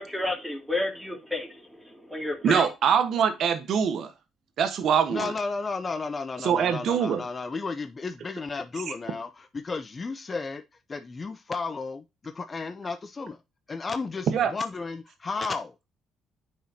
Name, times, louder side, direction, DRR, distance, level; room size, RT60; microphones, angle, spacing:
voice 1, 0.0-2.7, left 2 dB, 5° right, 2.5 m, -31 dB
voice 2, 2.4-4.1 4.6-5.3 6.4-7.2 8.9-9.0 14.3-14.5, right 7 dB, 65° right, 1.2 m, -24 dB
voice 3, 5.1-10.6 10.9-13.4 13.7-15.7, left 4 dB, 35° left, 0.6 m, -33 dB
9.0 x 4.9 x 2.8 m
supercardioid pair, 65°, 0 cm